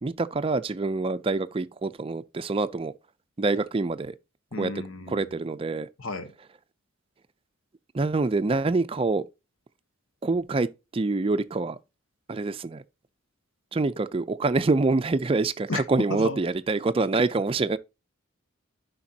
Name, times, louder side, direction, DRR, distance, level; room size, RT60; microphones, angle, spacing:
voice 1, 0.0-2.9 3.4-4.2 4.6-4.7 5.1-5.9 7.9-9.3 10.2-11.8 12.3-12.8 13.7-17.8, right 3 dB, 25° right, 0.4 m, -26 dB
voice 2, 4.5-5.3 6.0-6.3 15.7-15.8 16.1-16.4, left 3 dB, 90° left, 1.0 m, -33 dB
11.5 x 5.2 x 2.7 m
head